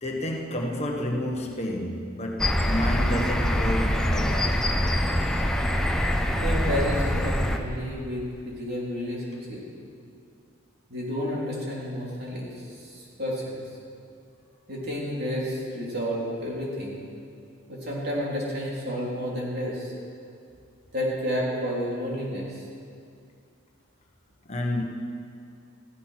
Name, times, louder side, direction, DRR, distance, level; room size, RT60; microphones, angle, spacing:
voice 1, 0.0-4.6 24.5-24.8, left 1 dB, 30° left, 1 dB, 1.3 m, -30 dB
sound 1, 2.4-7.6, equal, 5° left, 0.8 m, -24 dB
voice 2, 6.4-9.6 10.9-13.6 14.7-17.0 17.7-19.9 20.9-22.6, equal, 50° right, -4 dB, 3.8 m, -31 dB
15.5 x 14.0 x 6.0 m, 2.4 s
head